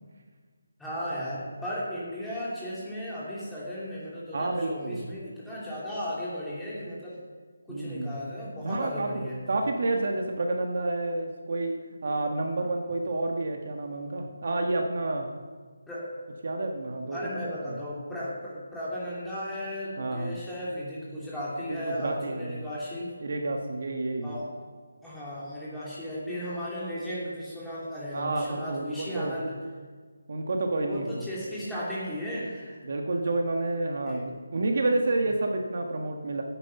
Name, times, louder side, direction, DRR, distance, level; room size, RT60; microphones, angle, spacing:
voice 1, 0.8-7.2 7.7-9.4 15.9-16.0 17.1-23.1 24.2-24.5 25.0-29.6 30.8-32.8 34.1-34.2, equal, 5° left, -9 dB, 2.9 m, -35 dB
voice 2, 4.3-5.0 7.7-8.1 8.6-9.1 9.5-15.3 16.4-17.5 20.0-20.4 21.7-22.6 23.2-24.4 28.1-29.4 30.3-31.2 32.8-36.4, right 2 dB, 50° right, 3 dB, 1.4 m, -29 dB
16.0 x 9.3 x 5.8 m, 1.5 s
figure-of-eight pair, 170°, 0 cm